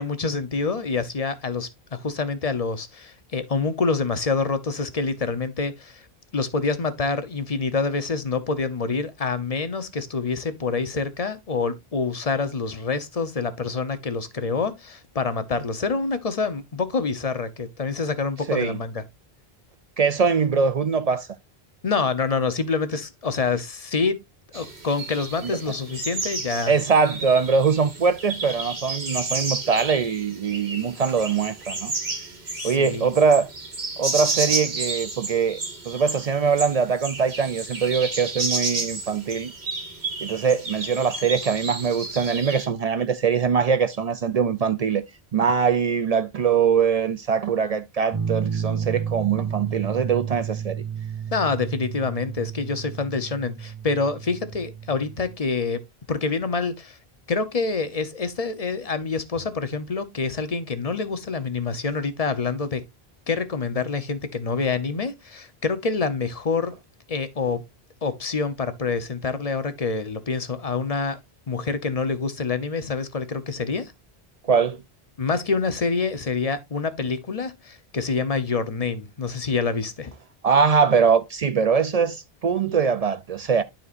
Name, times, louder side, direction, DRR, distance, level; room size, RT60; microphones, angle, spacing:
voice 1, 0.0-6.1 6.3-19.0 21.8-24.2 24.5-26.8 32.5-33.1 51.3-55.8 56.1-57.0 57.3-62.8 63.3-66.7 67.1-67.6 68.0-71.2 71.5-73.9 75.2-80.1, left 4 dB, 40° left, 0.8 m, -26 dB
voice 2, 20.0-21.3 25.4-25.5 26.7-31.9 32.6-33.5 34.0-35.6 35.8-39.5 40.2-45.0 45.3-50.8 74.4-74.8 80.4-83.6, right 6 dB, 55° right, 0.4 m, -22 dB
sound 1, 24.5-42.7, right 3 dB, 85° right, 2.1 m, -32 dB
sound 2, 48.1-55.4, right 7 dB, 20° right, 0.8 m, -31 dB
12.5 x 4.3 x 2.5 m
omnidirectional pair, 1.0 m